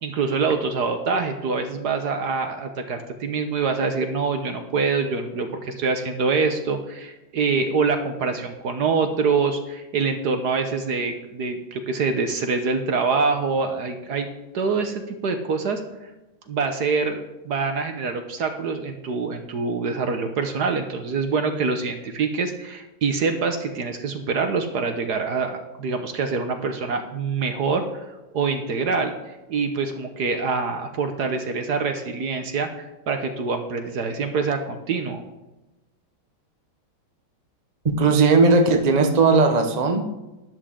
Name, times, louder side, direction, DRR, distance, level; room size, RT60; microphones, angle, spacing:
voice 1, 0.0-14.3 14.5-15.8 16.5-28.1 28.3-35.2, right 4 dB, 60° right, 6 dB, 1.4 m, -25 dB
voice 2, 37.8-40.1, right 4 dB, 25° right, 4 dB, 1.0 m, -17 dB
12.5 x 11.0 x 3.7 m, 1.0 s
omnidirectional pair, 2.2 m